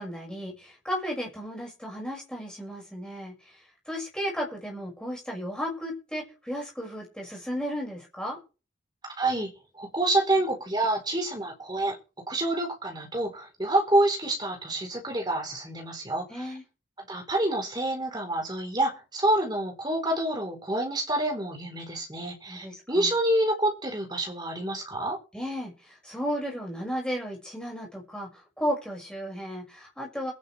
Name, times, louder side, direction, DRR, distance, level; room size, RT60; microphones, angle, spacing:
voice 1, 0.0-3.6 3.9-8.4 16.3-16.6 22.5-23.1 25.3-30.3, equal, 5° left, -1 dB, 6.2 m, -34 dB
voice 2, 9.0-9.5 9.8-11.9 12.3-16.5 17.0-25.2, right 1 dB, 20° right, 2 dB, 4.3 m, -27 dB
22.0 x 10.5 x 3.5 m, 0.33 s
head